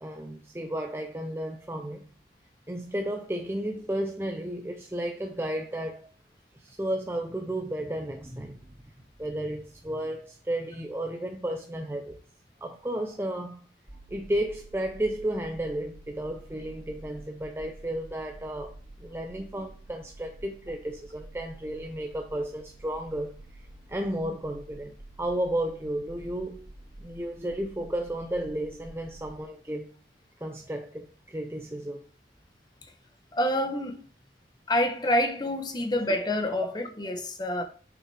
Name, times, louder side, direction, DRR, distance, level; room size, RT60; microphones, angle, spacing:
voice 1, 0.0-2.0 2.7-6.1 6.5-8.9 9.2-12.2 12.6-13.7 14.1-18.7 19.0-26.7 27.0-29.9 30.4-32.1, right 1 dB, 15° right, 0.5 m, -33 dB
sound 1, 13.9-29.4, right 2 dB, 80° right, 2.4 m, -49 dB
voice 2, 33.3-34.0 34.7-37.6, left 1 dB, 25° left, 0.9 m, -27 dB
7.3 x 6.1 x 3.3 m
head